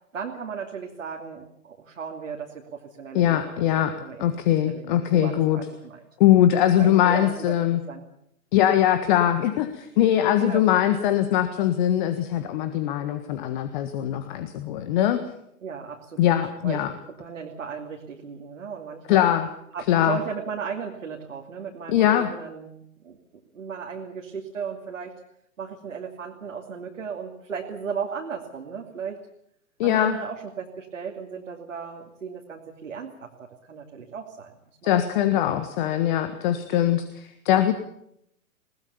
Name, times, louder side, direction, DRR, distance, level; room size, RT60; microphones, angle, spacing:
voice 1, 0.1-4.3 4.6-6.0 6.8-7.5 7.9-8.1 10.4-10.6 15.6-16.4 16.6-16.8 17.2-19.3 19.7-23.2 23.5-25.1 25.6-29.2 29.8-35.0 35.3-35.4 37.5-37.7, right 6 dB, 65° right, 0 dB, 2.8 m, -36 dB
voice 2, 3.1-3.9 4.2-5.6 6.2-7.8 8.5-15.2 16.2-16.9 19.1-19.5 19.9-20.2 21.9-22.3 29.8-30.2 34.8-37.7, left 11 dB, 35° left, 10 dB, 1.6 m, -21 dB
21.5 x 19.5 x 7.1 m, 0.74 s
figure-of-eight pair, 115°, 42 cm